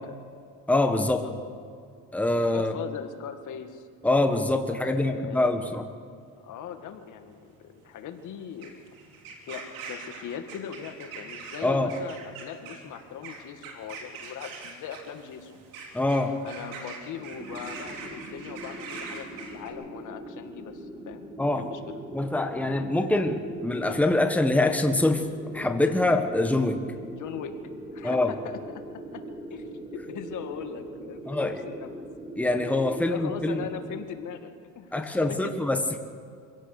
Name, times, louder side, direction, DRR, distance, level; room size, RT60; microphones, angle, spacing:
voice 1, 0.7-1.2 2.1-2.7 4.0-5.9 11.6-11.9 15.9-16.4 21.4-21.7 22.1-25.3 25.5-26.8 28.0-28.3 31.3-31.6 32.4-33.6 34.9-36.0, left 2 dB, 5° left, 6 dB, 1.5 m, -24 dB
voice 2, 2.4-3.9 4.8-5.8 6.4-8.7 9.5-15.6 16.4-21.3 21.6-22.0 27.0-27.5 27.9-29.2 29.5-31.9 33.0-35.6, left 8 dB, 65° left, 7 dB, 2.0 m, -40 dB
sound 1, 6.3-19.7, right 4 dB, 85° right, 3.6 m, -43 dB
sound 2, 17.2-34.1, right 1 dB, 15° right, 4.3 m, -41 dB
25.5 x 17.0 x 6.7 m, 2.3 s
cardioid pair, 105°, 33 cm